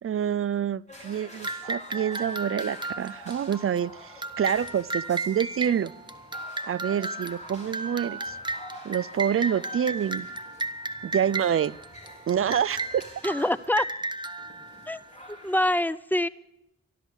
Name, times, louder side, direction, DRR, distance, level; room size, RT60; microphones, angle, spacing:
voice 1, 0.0-5.9 6.6-8.4 8.8-10.3 11.0-11.8 12.3-13.0, right 8 dB, 50° right, 19 dB, 0.4 m, -27 dB
sound 1, 0.9-15.6, left 1 dB, 25° left, 5.4 m, -48 dB
sound 2, 1.4-15.6, right 2 dB, 15° right, 1.0 m, -35 dB
voice 2, 13.2-13.9 14.9-15.0 15.3-16.3, left 1 dB, 5° left, 15 dB, 0.5 m, -25 dB
13.0 x 13.0 x 6.3 m, 0.84 s
cardioid pair, 60°, 29 cm